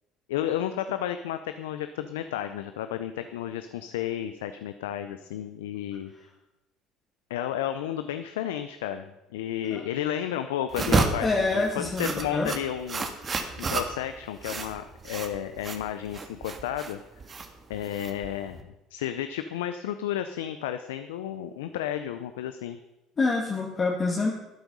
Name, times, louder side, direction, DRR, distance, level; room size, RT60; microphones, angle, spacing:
voice 1, 0.3-6.1 7.3-13.1 13.6-17.0 17.7-18.6 18.9-22.8, left 11 dB, 90° left, 10 dB, 0.5 m, -32 dB
sound 1, 10.7-18.6, right 4 dB, 35° right, 1.7 m, -31 dB
voice 2, 11.2-12.5 23.2-24.3, left 3 dB, 35° left, -2 dB, 2.0 m, -26 dB
12.0 x 9.2 x 5.4 m, 0.96 s
supercardioid pair, 75°, 0 cm